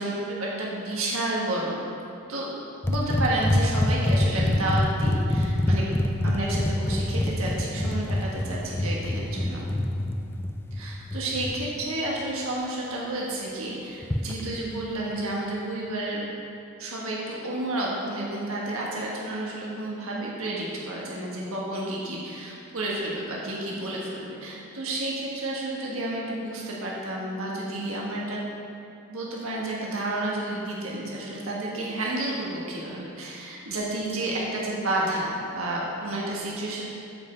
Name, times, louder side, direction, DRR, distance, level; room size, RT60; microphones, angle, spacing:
voice 1, 0.0-1.8 2.3-2.5 2.9-5.8 6.2-9.6 10.7-16.2 16.8-28.5 29.1-36.9, right 1 dB, 75° right, -4 dB, 1.5 m, -31 dB
sound 1, 2.8-11.7 14.0-14.4, left 1 dB, 10° left, 0.4 m, -25 dB
8.5 x 5.4 x 7.1 m, 2.8 s
head